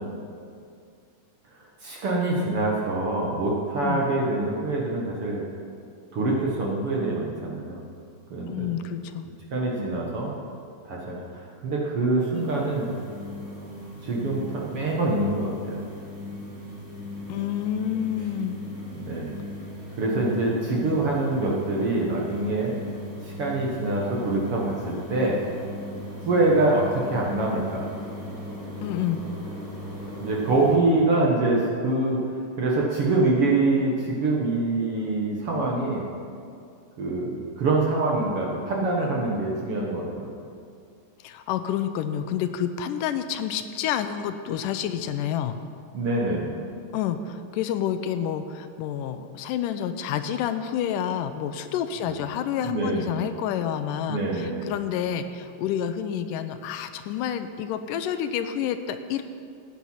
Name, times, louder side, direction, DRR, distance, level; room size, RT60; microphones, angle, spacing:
voice 1, 1.8-5.4 6.1-7.8 8.3-8.7 9.5-10.3 10.8-12.9 14.0-15.8 18.9-19.4 20.0-22.7 23.2-25.4 26.2-27.9 30.2-32.2 32.6-36.1 37.0-40.3 45.9-46.6 52.1-52.2 52.6-53.2 54.1-54.7, right 2 dB, 55° right, -3 dB, 1.8 m, -25 dB
voice 2, 8.5-9.3 9.8-9.9 17.3-18.6 28.8-29.2 41.2-45.6 46.9-59.2, left 9 dB, 80° left, 9 dB, 2.1 m, -29 dB
sound 1, 12.3-30.8, left 1 dB, 5° right, 2.0 m, -38 dB
15.5 x 9.4 x 5.6 m, 2.4 s
omnidirectional pair, 4.0 m